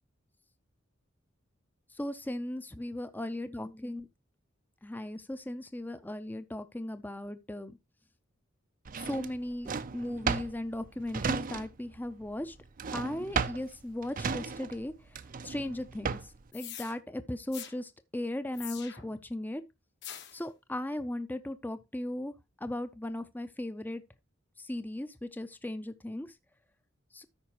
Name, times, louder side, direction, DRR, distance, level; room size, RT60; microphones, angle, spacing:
voice 1, 2.0-4.1 4.8-7.8 9.0-12.6 12.9-14.9 15.4-16.2 16.5-19.6 20.3-22.3 22.6-24.0 24.6-26.3 27.1-27.2, left 1 dB, 10° left, 0.5 m, -37 dB
Drawer open or close, 8.9-12.0 12.2-16.5, right 5 dB, 45° right, 0.5 m, -35 dB
sound 1, 16.5-16.9 17.5-17.7 18.5-19.2 20.0-20.4, left 10 dB, 60° left, 1.2 m, -44 dB
13.5 x 5.0 x 3.0 m
head